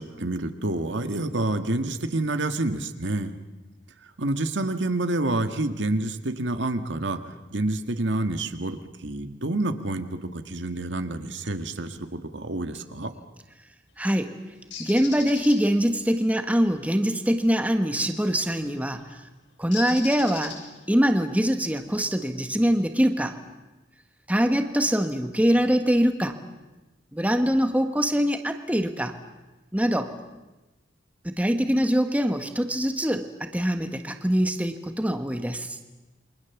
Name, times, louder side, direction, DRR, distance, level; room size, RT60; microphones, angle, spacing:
voice 1, 0.0-3.3 4.2-7.2 7.5-13.1, right 2 dB, 75° right, 7 dB, 1.7 m, -28 dB
voice 2, 14.0-14.3 14.8-19.2 19.6-20.6 20.9-23.4 24.3-26.4 27.1-29.1 29.7-30.1 31.2-35.8, equal, 10° right, 6 dB, 1.4 m, -23 dB
Bird, 14.7-15.6 18.2-18.4 19.7-20.9, left 7 dB, 80° left, 6.3 m, -37 dB
28.5 x 24.0 x 7.2 m, 1.1 s
head